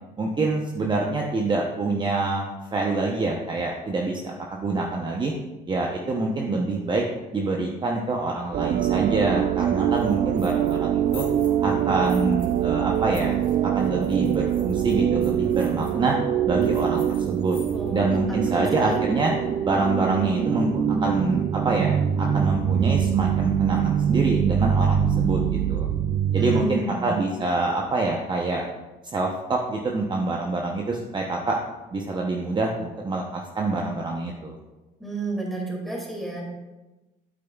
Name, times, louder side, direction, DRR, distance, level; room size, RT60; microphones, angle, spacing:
voice 1, 0.2-5.3 5.7-7.0 7.3-11.2 11.6-13.3 13.6-16.1 16.5-17.6 17.9-19.3 19.6-25.9 26.3-28.6 29.1-31.6 31.9-34.6, right 3 dB, 25° right, 0 dB, 0.8 m, -26 dB
sound 1, 8.5-26.7, right 9 dB, 45° right, 0.4 m, -24 dB
sound 2, 10.0-10.8 11.1-12.6 12.9-15.9 16.6-18.0, left 7 dB, 55° left, 1.4 m, -48 dB
voice 2, 17.7-19.0 26.4-27.1 35.0-36.4, right 3 dB, ahead, -2 dB, 2.3 m, -32 dB
8.7 x 8.3 x 2.4 m, 1.1 s
cardioid pair, 110°, 17 cm